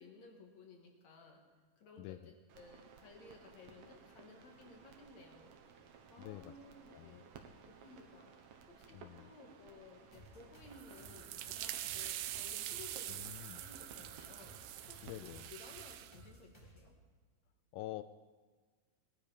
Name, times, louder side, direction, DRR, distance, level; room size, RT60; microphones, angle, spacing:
voice 1, 0.0-1.4 1.8-5.5 6.1-7.3 7.7-8.4 8.7-13.2 13.6-14.6 14.9-16.9, left 3 dB, 50° left, 2 dB, 2.7 m, -57 dB
voice 2, 2.0-2.3 6.2-6.5 6.9-7.2 8.9-9.3 13.1-13.6 15.0-15.5 17.7-18.0, left 15 dB, 80° left, 12 dB, 2.3 m, -47 dB
sound 1, 2.5-15.5, right 6 dB, 65° right, 2.0 m, -58 dB
sound 2, 10.1-17.0, right 1 dB, 10° left, 1.3 m, -59 dB
sound 3, 10.7-16.2, right 13 dB, 85° right, 2.7 m, -44 dB
20.0 x 12.5 x 5.1 m, 1.4 s
omnidirectional pair, 4.5 m